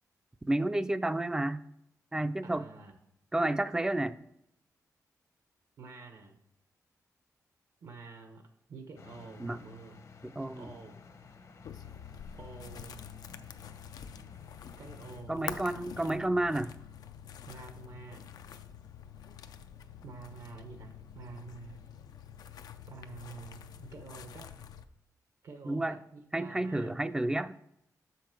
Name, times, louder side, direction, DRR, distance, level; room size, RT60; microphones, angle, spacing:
voice 1, 0.5-1.6 2.1-2.6 3.3-4.2 9.4-9.6 10.2-10.7 15.3-16.7 25.7-26.0 26.3-27.5, right 1 dB, 10° right, 13 dB, 0.3 m, -30 dB
voice 2, 2.4-2.9 5.8-6.4 7.8-10.0 10.5-11.0 12.4-13.0 14.8-15.5 17.5-18.2 20.0-21.8 22.9-24.5 25.4-26.9, right 4 dB, 75° right, 5 dB, 1.0 m, -48 dB
sound 1, 9.0-15.2, left 4 dB, 55° left, 0.8 m, -54 dB
sound 2, 11.6-24.9, left 8 dB, 90° left, 0.4 m, -47 dB
6.7 x 5.7 x 4.4 m, 0.77 s
wide cardioid pair, 115°, 6 cm